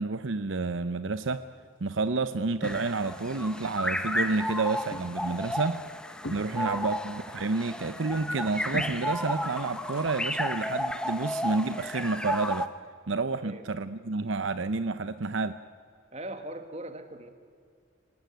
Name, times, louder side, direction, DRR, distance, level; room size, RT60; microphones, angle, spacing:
voice 1, 0.0-1.5 1.8-5.8 6.3-12.7 13.1-15.6, right 3 dB, 70° right, 12 dB, 0.7 m, -30 dB
sound 1, 1.5-3.3 3.6-4.2 4.5-10.5, left 1 dB, 60° left, 1.4 m, -45 dB
sound 2, 2.6-12.7, left 1 dB, 5° left, 0.9 m, -33 dB
voice 2, 6.4-6.9 13.3-13.8 16.1-17.3, right 1 dB, 30° right, 8 dB, 1.7 m, -40 dB
25.5 x 18.5 x 9.3 m, 2.3 s
head